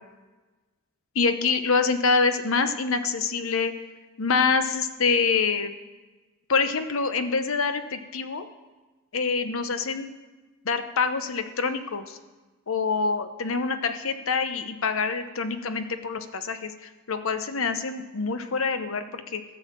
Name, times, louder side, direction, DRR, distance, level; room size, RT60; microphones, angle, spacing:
voice 1, 1.1-3.7 4.2-5.8 6.5-8.5 9.1-10.1 10.6-12.2 12.7-19.4, left 4 dB, 65° left, 9 dB, 0.9 m, -26 dB
14.0 x 6.4 x 7.3 m, 1.2 s
head